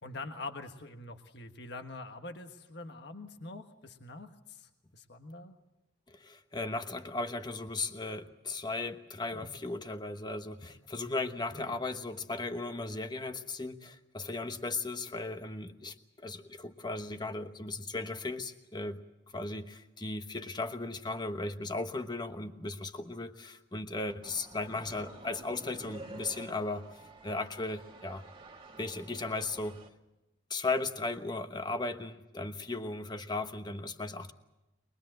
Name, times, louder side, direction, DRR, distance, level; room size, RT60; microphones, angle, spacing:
voice 1, 0.0-5.5 11.5-11.8, left 2 dB, 60° left, 6 dB, 1.5 m, -45 dB
voice 2, 6.1-19.0 19.3-28.3 28.8-29.8 30.5-34.3, left 3 dB, 25° left, 8 dB, 1.1 m, -36 dB
sound 1, 24.2-29.9, right 2 dB, 30° right, 1.7 m, -50 dB
23.5 x 21.5 x 7.8 m, 0.94 s
head